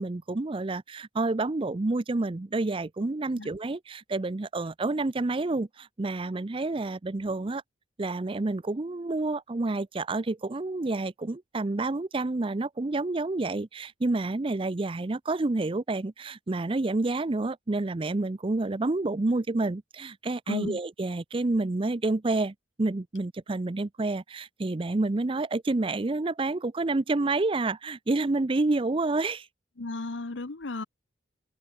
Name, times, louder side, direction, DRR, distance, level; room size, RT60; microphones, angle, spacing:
voice 1, 0.0-7.6 8.0-29.5, right 2 dB, 30° right, 0.5 m, -29 dB
voice 2, 20.5-20.8 29.8-30.8, left 2 dB, 90° left, 1.1 m, -34 dB
open air
head